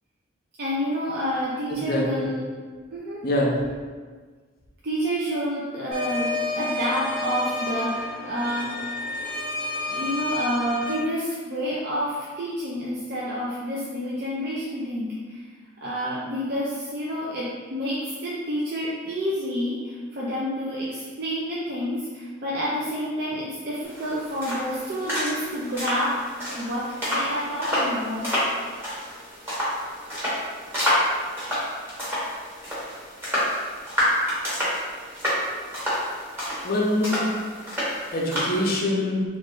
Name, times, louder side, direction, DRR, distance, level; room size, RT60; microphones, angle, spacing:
voice 1, 0.6-2.4 2.9-3.3 4.8-8.7 9.9-15.4 15.8-26.1 26.5-28.3, equal, 50° right, -7 dB, 0.5 m, -29 dB
voice 2, 1.7-2.3 3.2-3.5 36.6-37.2 38.1-39.2, left 1 dB, 50° left, -2 dB, 0.6 m, -24 dB
sound 1, 5.9-10.9, left 2 dB, 80° right, 1.1 m, -30 dB
sound 2, 23.8-38.8, equal, 10° right, 1.0 m, -28 dB
3.1 x 2.4 x 3.7 m, 1.5 s
head